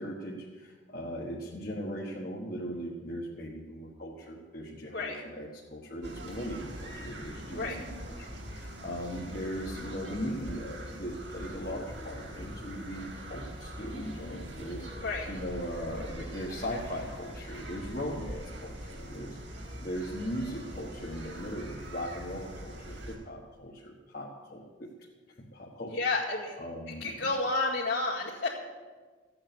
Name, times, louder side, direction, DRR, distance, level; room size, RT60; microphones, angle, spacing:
voice 1, 0.0-19.4 19.8-25.1 25.4-26.0 26.6-27.3, equal, 50° left, -4 dB, 1.5 m, -39 dB
sound 1, 6.0-23.2, equal, 70° right, 2.9 m, -43 dB
voice 2, 25.9-26.6 27.0-28.5, left 3 dB, 75° left, -7 dB, 2.3 m, -30 dB
15.0 x 8.7 x 7.0 m, 1.4 s
head